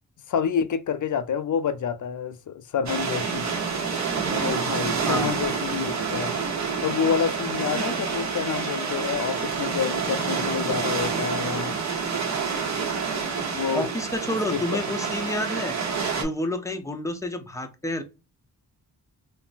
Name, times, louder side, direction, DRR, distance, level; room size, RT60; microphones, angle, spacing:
voice 1, 0.3-3.5 4.4-6.3 6.8-11.7 13.5-13.9 14.5-14.8, left 7 dB, 50° left, 0.5 m, -28 dB
sound 1, 2.9-16.2, right 5 dB, 45° right, 0.9 m, -28 dB
voice 2, 13.7-15.8 16.1-18.0, left 1 dB, 10° left, 0.6 m, -29 dB
3.7 x 2.1 x 2.4 m
cardioid pair, 70°, 39 cm